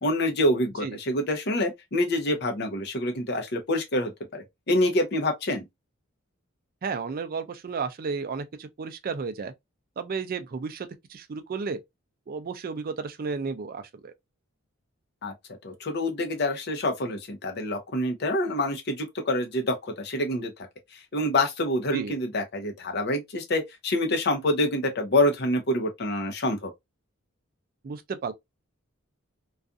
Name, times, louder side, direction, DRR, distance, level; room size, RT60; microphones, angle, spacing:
voice 1, 0.0-5.6 15.2-15.3 15.6-20.5 20.9-26.7, left 1 dB, 55° left, 0.7 m, -26 dB
voice 2, 6.8-9.5 10.0-11.8 12.3-14.1 21.9-22.1 27.8-28.3, right 5 dB, 45° right, 0.4 m, -33 dB
2.4 x 2.4 x 2.5 m
head